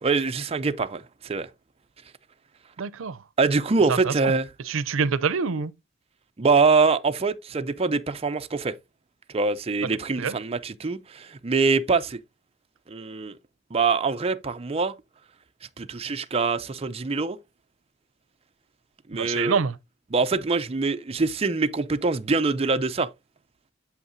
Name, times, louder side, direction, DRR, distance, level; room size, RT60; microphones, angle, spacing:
voice 1, 0.0-1.5 3.4-4.5 6.4-8.7 9.3-12.2 12.9-13.3 13.7-14.9 15.8-17.4 19.1-19.6 20.1-23.1, right 4 dB, 30° right, 0.5 m, -24 dB
voice 2, 2.8-3.2 3.9-4.1 4.7-5.7 10.2-10.4 19.1-19.8, right 5 dB, 90° right, 0.5 m, -26 dB
8.4 x 7.3 x 2.6 m
head